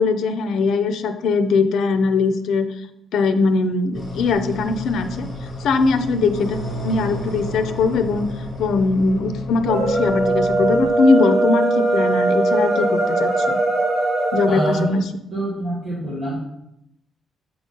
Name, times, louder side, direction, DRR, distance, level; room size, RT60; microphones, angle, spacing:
voice 1, 0.0-2.7 3.1-5.3 5.6-6.6 6.8-8.2 8.6-13.6 14.3-15.0, left 4 dB, 70° left, 8 dB, 0.5 m, -20 dB
sound 1, 3.9-10.9, left 1 dB, 30° left, 2.4 m, -31 dB
sound 2, 9.6-14.9, right 2 dB, 70° right, 2.4 m, -20 dB
voice 2, 14.5-15.0 15.3-16.3, right 1 dB, 35° right, -6 dB, 1.4 m, -25 dB
6.7 x 3.9 x 3.8 m, 0.82 s
cardioid pair, 170°, 0 cm